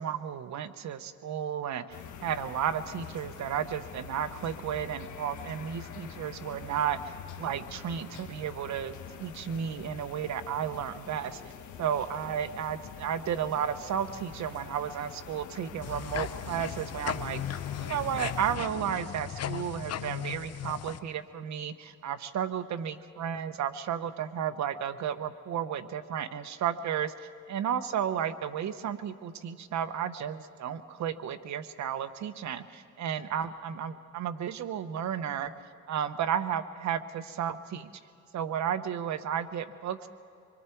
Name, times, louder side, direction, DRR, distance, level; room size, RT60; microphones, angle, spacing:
voice 1, 0.0-1.8 2.2-11.4 11.8-35.5 35.9-37.9 38.3-40.1, right 8 dB, 65° right, 11 dB, 1.0 m, -33 dB
sound 1, 1.9-18.6, left 8 dB, 75° left, 1.5 m, -45 dB
sound 2, 15.8-21.0, left 10 dB, 55° left, 0.9 m, -37 dB
24.5 x 23.0 x 4.6 m, 2.5 s
cardioid pair, 90°, 30 cm